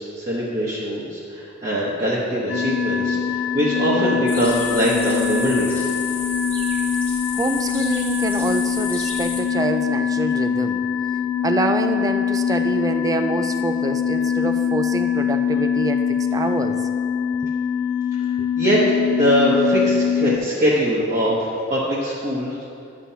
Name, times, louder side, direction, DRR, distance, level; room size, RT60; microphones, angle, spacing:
voice 1, 0.0-5.9 18.2-18.8 19.1-22.6, equal, 35° right, -6 dB, 1.0 m, -22 dB
sound 1, 2.5-20.4, left 7 dB, 45° left, 0.5 m, -23 dB
sound 2, 4.3-9.4, left 2 dB, 10° left, 1.2 m, -33 dB
voice 2, 7.3-10.8 11.4-16.8 18.4-18.5, right 2 dB, 20° right, 8 dB, 0.3 m, -26 dB
11.5 x 7.4 x 2.8 m, 2.6 s
head